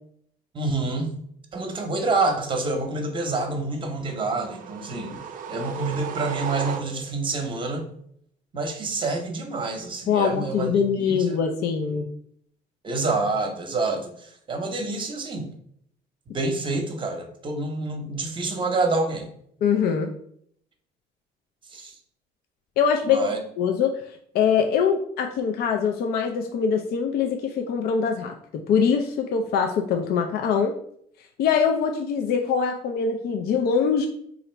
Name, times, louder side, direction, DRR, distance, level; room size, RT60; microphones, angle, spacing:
voice 1, 0.5-1.1 1.5-7.9 8.5-10.7 11.0-11.4 12.8-15.5 16.3-19.3 21.7-21.9 23.0-23.4, right 3 dB, 30° right, 5 dB, 0.8 m, -27 dB
sound 1, 4.1-7.3, right 7 dB, 55° right, 0.4 m, -36 dB
voice 2, 10.1-12.1 19.6-20.1 22.8-23.3 23.6-23.9 24.3-28.3 28.7-30.7 31.4-34.1, left 6 dB, 65° left, 4 dB, 0.4 m, -23 dB
2.9 x 2.5 x 4.3 m, 0.66 s
cardioid pair, 110°, 17 cm